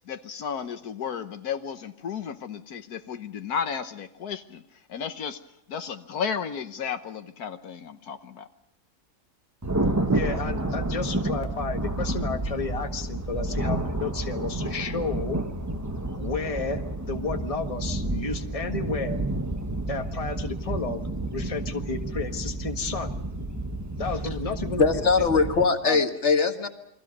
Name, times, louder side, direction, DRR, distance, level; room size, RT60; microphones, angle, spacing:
voice 1, 0.1-4.6 4.9-5.4 5.7-8.5, left 7 dB, 80° left, 8 dB, 1.5 m, -33 dB
Thunder, 9.6-25.6, right 2 dB, 10° right, 1.2 m, -30 dB
voice 2, 10.1-15.4 16.1-19.2 19.9-21.0 21.3-23.1 24.0-24.8 25.4-25.5 25.8-26.0, left 4 dB, 25° left, 5 dB, 1.6 m, -32 dB
voice 3, 24.8-26.7, left 4 dB, 45° left, 6 dB, 2.0 m, -21 dB
29.5 x 22.5 x 5.3 m, 0.82 s
omnidirectional pair, 1.6 m